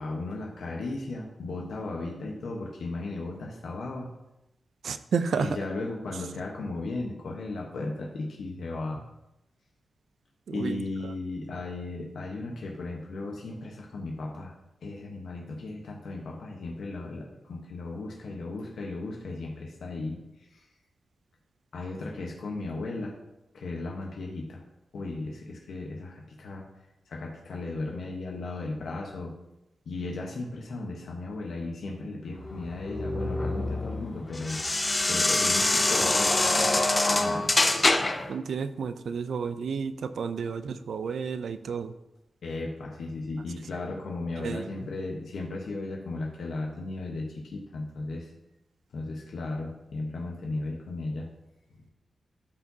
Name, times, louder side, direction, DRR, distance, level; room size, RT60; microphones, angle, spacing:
voice 1, 0.0-4.1 5.4-9.0 10.5-14.5 14.8-20.2 20.5-20.6 21.7-23.1 23.5-24.6 24.9-26.6 27.1-29.3 29.9-34.6 35.1-37.5 42.4-48.3 48.9-51.3, left 2 dB, 85° left, -1 dB, 1.1 m, -36 dB
voice 2, 4.8-5.6 10.5-11.1 38.3-41.9 44.4-44.9, right 6 dB, 85° right, 11 dB, 0.4 m, -31 dB
sound 1, 32.5-38.3, left 2 dB, 25° left, 0.7 m, -25 dB
12.0 x 4.7 x 2.8 m, 0.92 s
cardioid pair, 85°, 0 cm